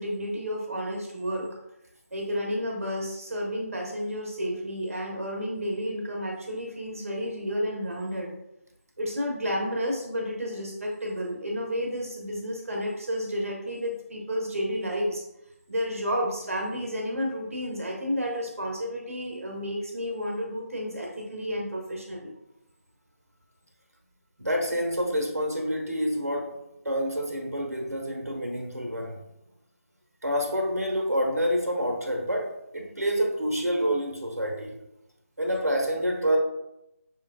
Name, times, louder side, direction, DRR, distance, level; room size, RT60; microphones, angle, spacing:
voice 1, 0.0-1.5 2.1-8.3 9.0-15.2 15.7-22.3, equal, 65° right, -1 dB, 1.0 m, -31 dB
voice 2, 24.4-26.6 26.8-29.2 30.2-34.7 35.4-36.4, equal, 85° right, 1 dB, 1.2 m, -27 dB
6.0 x 3.8 x 2.3 m, 0.84 s
figure-of-eight pair, 160°, 8 cm